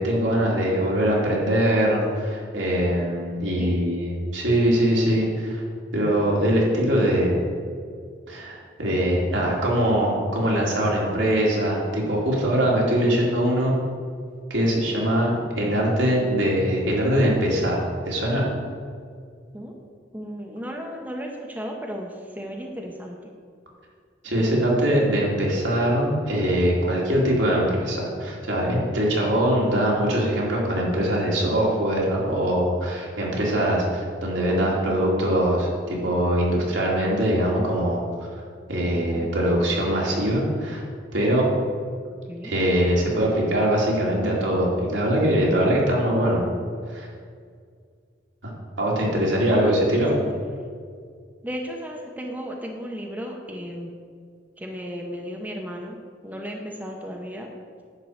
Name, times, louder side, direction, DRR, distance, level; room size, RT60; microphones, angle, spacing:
voice 1, 0.0-5.6 5.9-7.4 8.3-13.8 14.5-18.4 24.2-38.3 38.7-40.8 41.1-41.5 42.4-46.4 46.9-47.1 48.4-48.5 48.8-50.2, equal, 85° right, -3 dB, 2.6 m, -22 dB
voice 2, 20.1-23.3 38.9-39.3 42.3-42.5 49.4-50.3 51.4-53.9 54.6-56.0 56.2-57.5, equal, 10° right, 1 dB, 0.8 m, -35 dB
10.5 x 4.6 x 7.8 m, 2.1 s
head